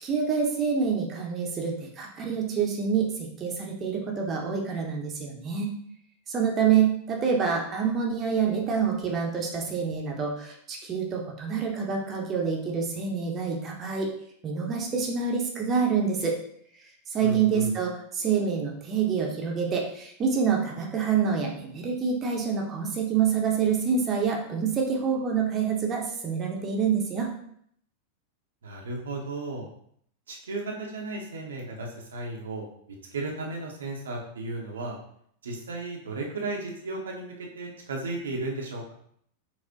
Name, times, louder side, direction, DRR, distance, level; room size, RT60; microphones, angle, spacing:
voice 1, 0.0-5.7 6.3-14.1 14.4-16.4 17.1-27.3, right 6 dB, 25° right, 0 dB, 0.6 m, -27 dB
voice 2, 17.2-17.7 28.6-29.7 30.3-35.0 35.4-38.9, right 2 dB, 65° right, 0 dB, 0.6 m, -34 dB
4.3 x 2.0 x 2.7 m, 0.66 s
figure-of-eight pair, 90°, 0 cm